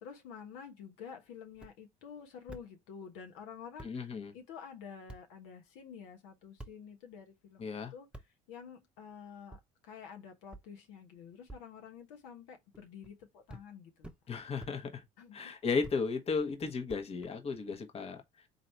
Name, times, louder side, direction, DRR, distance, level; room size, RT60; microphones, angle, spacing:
voice 1, 0.0-14.1 15.2-15.6, left 7 dB, 80° left, 1.2 m, -50 dB
sound 1, 1.5-1.7 2.5-2.6 3.4-3.5 3.8-3.9 5.1-5.2 6.6-6.7 8.1-8.3 9.5-9.6 10.5-10.6 11.5-11.6 12.7-13.1 13.5-13.7 14.0-14.2 14.6-14.7 15.8-16.0 16.9-17.6, right 1 dB, 5° right, 0.8 m, -48 dB
voice 2, 3.8-4.3 7.6-7.9 14.3-15.0 15.3-18.5, left 4 dB, 35° left, 1.2 m, -35 dB
4.1 x 2.8 x 4.5 m
supercardioid pair, 85°, 17 cm